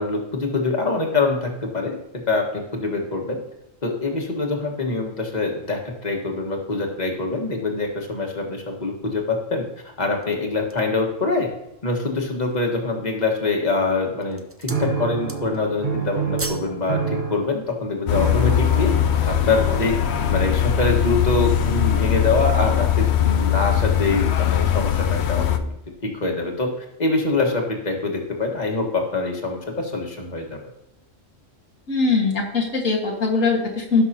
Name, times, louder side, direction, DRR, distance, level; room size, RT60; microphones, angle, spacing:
voice 1, 0.0-2.0 2.3-3.4 3.8-9.6 10.0-11.5 11.8-18.9 19.2-19.9 20.3-25.7 26.0-26.7 27.0-30.6, left 3 dB, 35° left, 1 dB, 1.7 m, -24 dB
sound 1, 10.0-11.0 11.6-11.7 12.2-12.7 13.4-13.8 14.1-14.9 15.2-15.7 16.0-16.7 17.1-17.2, right 2 dB, 15° right, 0.5 m, -37 dB
sound 2, 14.7-21.2, right 5 dB, 40° right, 1.1 m, -29 dB
sound 3, 18.1-25.6, left 10 dB, 65° left, 0.8 m, -20 dB
voice 2, 31.9-34.0, left 4 dB, 80° left, -2 dB, 2.1 m, -21 dB
17.0 x 6.1 x 2.8 m, 0.88 s
omnidirectional pair, 1.3 m